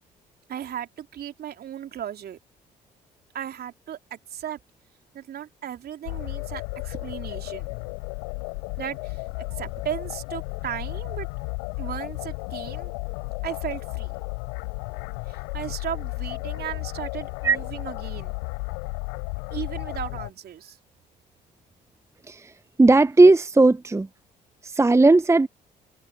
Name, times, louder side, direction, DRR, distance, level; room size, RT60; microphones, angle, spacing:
voice 1, 0.5-2.4 3.3-4.6 5.1-7.8 8.8-9.2 9.6-11.3 11.8-12.9 13.4-14.1 15.3-18.3 19.5-20.8, right 10 dB, 50° right, 3.4 m, -36 dB
sound 1, 6.0-20.3, left 40 dB or more, 70° left, 5.8 m, -33 dB
voice 2, 22.8-24.1 24.6-25.5, right 3 dB, 15° right, 0.9 m, -16 dB
figure-of-eight pair, 50°, 21 cm